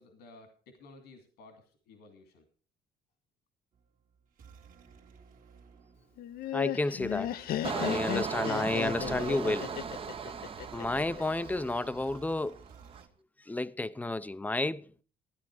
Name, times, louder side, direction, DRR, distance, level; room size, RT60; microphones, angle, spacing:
voice 1, 0.0-2.5, left 3 dB, 85° left, 2.5 m, -55 dB
sound 1, 3.7-13.1, right 6 dB, 55° right, 1.9 m, -56 dB
Laughter, 6.2-11.2, left 12 dB, 60° left, 0.6 m, -35 dB
voice 2, 6.5-7.4 7.6-9.8 10.7-12.6 13.4-15.0, left 2 dB, 10° left, 0.6 m, -31 dB
Engine, 7.6-12.3 12.7-13.0, right 6 dB, 35° right, 0.8 m, -37 dB
13.5 x 10.0 x 4.7 m
cardioid pair, 110°, 17 cm